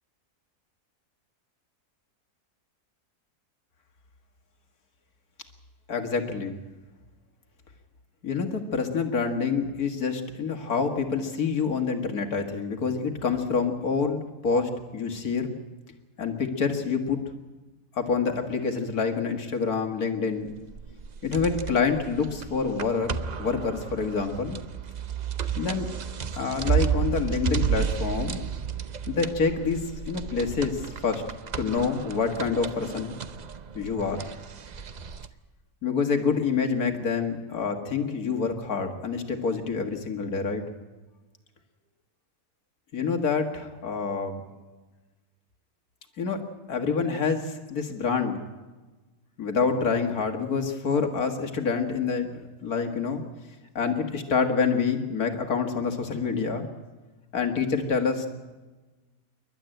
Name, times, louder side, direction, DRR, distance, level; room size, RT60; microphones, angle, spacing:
voice 1, 5.9-6.5 8.2-15.6 16.2-17.2 17.9-20.5 21.2-23.1 23.4-24.6 25.6-25.9 26.3-28.5 29.1-31.2 31.6-33.2 33.7-34.2 35.8-40.6 42.9-44.4 46.2-46.4 46.7-48.4 49.4-53.2 53.8-56.7 57.3-58.3, left 5 dB, 70° left, 5 dB, 2.3 m, -27 dB
sound 1, 20.5-35.3, right 7 dB, 45° right, 0.5 m, -32 dB
28.0 x 12.0 x 9.1 m, 1.2 s
omnidirectional pair, 1.7 m